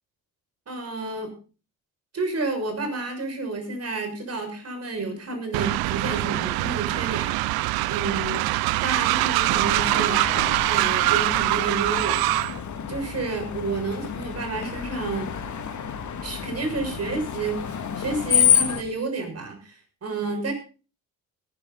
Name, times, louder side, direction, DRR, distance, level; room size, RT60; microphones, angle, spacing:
voice 1, 0.7-1.3 2.1-8.4 8.8-10.4 10.7-12.3 12.9-15.3 16.2-20.5, right 3 dB, 35° right, 6 dB, 6.5 m, -30 dB
Train, 5.5-12.6, right 18 dB, 60° right, 0.7 m, -23 dB
Screech, 9.5-18.8, left 8 dB, 40° left, 2.3 m, -28 dB
18.5 x 11.5 x 4.1 m, 0.36 s
hypercardioid pair, 55°, 42 cm